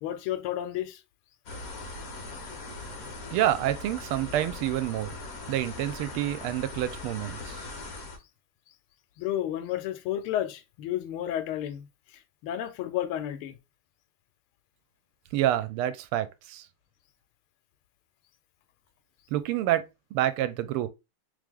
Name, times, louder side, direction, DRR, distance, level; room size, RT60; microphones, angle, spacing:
voice 1, 0.0-1.0 9.2-13.5, left 11 dB, 85° left, 1.5 m, -32 dB
sound 1, 1.5-8.2, left 3 dB, 50° left, 1.2 m, -40 dB
voice 2, 3.3-5.2 5.5-7.6 15.3-16.7 19.3-20.9, right 13 dB, 85° right, 1.5 m, -28 dB
3.4 x 3.4 x 3.5 m
omnidirectional pair, 2.4 m